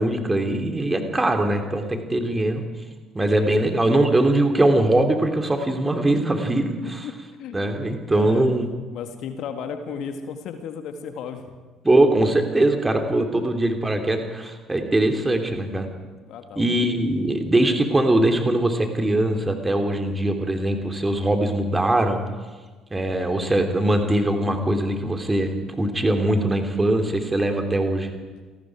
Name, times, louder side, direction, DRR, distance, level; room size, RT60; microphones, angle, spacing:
voice 1, 0.0-2.6 3.1-7.1 7.5-8.7 11.8-15.9 16.5-22.2 22.9-28.1, right 1 dB, 15° right, 5 dB, 3.2 m, -21 dB
voice 2, 3.4-3.7 7.0-7.6 8.1-8.6 8.9-11.5 16.2-16.8, left 6 dB, 50° left, 7 dB, 1.9 m, -34 dB
28.0 x 18.5 x 4.9 m, 1.3 s
figure-of-eight pair, 55°, 0 cm